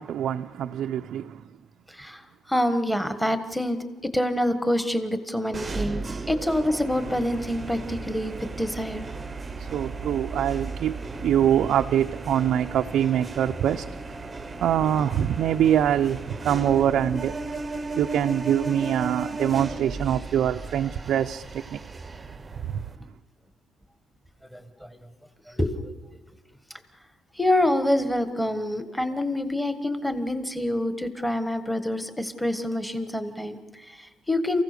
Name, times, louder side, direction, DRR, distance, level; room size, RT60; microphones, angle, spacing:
voice 1, 0.0-1.4 9.6-14.2 14.6-17.4 18.0-21.8 22.6-22.9, right 10 dB, 60° right, 0.6 m, -24 dB
voice 2, 1.9-3.8 4.1-6.0 6.3-9.1 10.3-10.4 11.2-11.3 24.5-24.9 25.5-25.9 27.3-34.6, left 1 dB, 5° left, 1.4 m, -26 dB
sound 1, 5.5-23.0, right 3 dB, 20° right, 0.9 m, -35 dB
28.5 x 16.0 x 6.8 m
cardioid pair, 160°, 0 cm